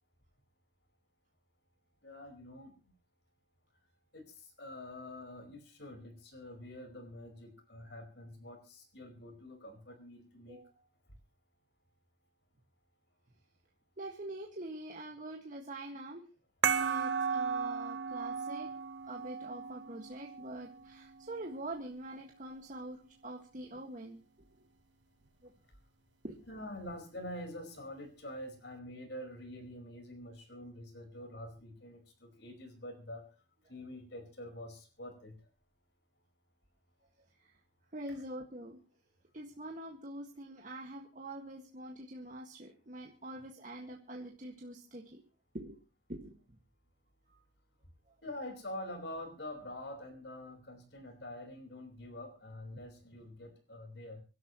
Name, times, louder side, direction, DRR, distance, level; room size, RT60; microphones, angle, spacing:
voice 1, 2.0-2.7 4.1-10.6 26.5-33.3 33.7-35.4 38.1-38.2 48.2-54.2, left 1 dB, 70° left, 5 dB, 4.9 m, -46 dB
voice 2, 10.5-10.8 14.0-16.2 16.8-18.7 19.0-24.2 24.6-24.7 25.4-25.5 26.2-26.4 37.4-37.6 37.9-38.8 39.3-45.2 45.5-45.8 46.1-46.4 47.3-47.4, right 1 dB, 45° right, 1 dB, 1.8 m, -45 dB
sound 1, 16.6-21.7, right 6 dB, 80° right, 1.0 m, -35 dB
26.0 x 12.0 x 3.1 m, 0.34 s
head